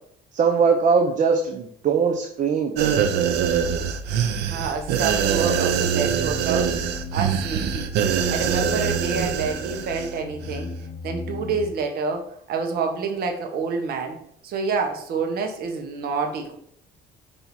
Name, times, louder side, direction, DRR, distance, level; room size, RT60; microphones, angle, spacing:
voice 1, 0.3-3.1, right 5 dB, 45° right, 3 dB, 0.9 m, -21 dB
sound 1, 2.7-10.1 10.4-10.6, right 8 dB, 90° right, 0.8 m, -24 dB
voice 2, 4.5-6.8 7.1-7.9 8.3-10.7 11.0-14.2 14.4-16.6, right 4 dB, 65° right, 4 dB, 1.6 m, -28 dB
sound 2, 5.4-11.7, left 2 dB, 65° left, 1.0 m, -37 dB
5.6 x 5.3 x 4.7 m, 0.65 s
cardioid pair, 110°, 17 cm